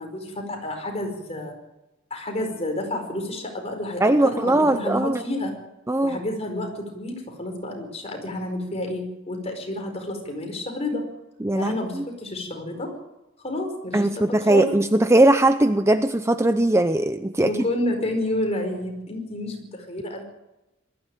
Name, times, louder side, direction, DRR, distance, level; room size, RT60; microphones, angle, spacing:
voice 1, 0.0-1.5 2.1-5.6 6.0-11.0 11.5-12.9 13.4-14.7 17.4-20.2, left 1 dB, 30° left, 3 dB, 4.9 m, -30 dB
voice 2, 4.0-5.2 5.9-6.2 11.4-12.0 13.9-17.5, right 1 dB, 15° right, 9 dB, 0.7 m, -20 dB
21.0 x 14.5 x 9.2 m, 0.97 s
head